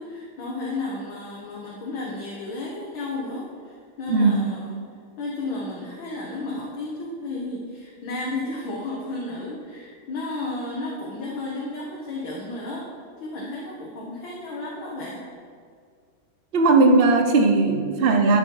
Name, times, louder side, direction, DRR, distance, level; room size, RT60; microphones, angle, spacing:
voice 1, 0.0-4.8 5.2-12.9 13.2-15.2, left 2 dB, 70° left, -4 dB, 2.1 m, -33 dB
voice 2, 4.1-4.4 16.5-18.4, right 3 dB, 55° right, 4 dB, 0.6 m, -18 dB
11.5 x 7.7 x 4.8 m, 2.1 s
omnidirectional pair, 2.2 m